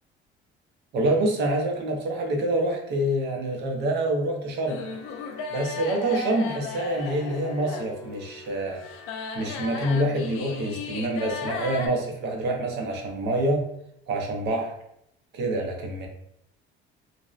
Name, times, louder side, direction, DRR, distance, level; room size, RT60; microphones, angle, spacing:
voice 1, 0.9-4.8 5.5-8.8 9.3-13.6 14.1-14.7 15.3-16.1, right 1 dB, 55° right, 2 dB, 0.6 m, -26 dB
sound 1, 4.7-11.9, left 4 dB, 90° left, 0.4 m, -36 dB
2.6 x 2.0 x 2.4 m, 0.74 s
cardioid pair, 160°, 21 cm